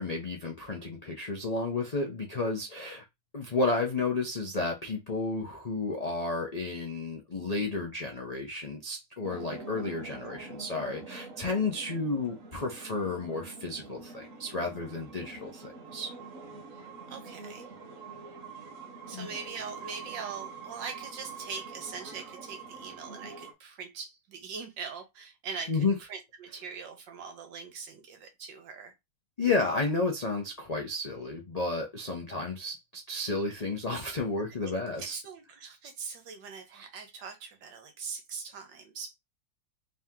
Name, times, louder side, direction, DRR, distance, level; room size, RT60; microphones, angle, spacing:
voice 1, 0.0-3.0 3.3-16.1 19.1-19.3 25.7-26.0 29.4-35.2, left 3 dB, 65° left, 0.4 m, -32 dB
sound 1, 9.2-23.5, right 4 dB, 50° right, 1.2 m, -45 dB
voice 2, 9.9-10.5 16.7-16.8 17.1-17.7 19.1-28.9 34.4-34.7 35.0-39.1, right 5 dB, 70° right, 1.7 m, -42 dB
3.9 x 2.9 x 3.6 m
omnidirectional pair, 2.0 m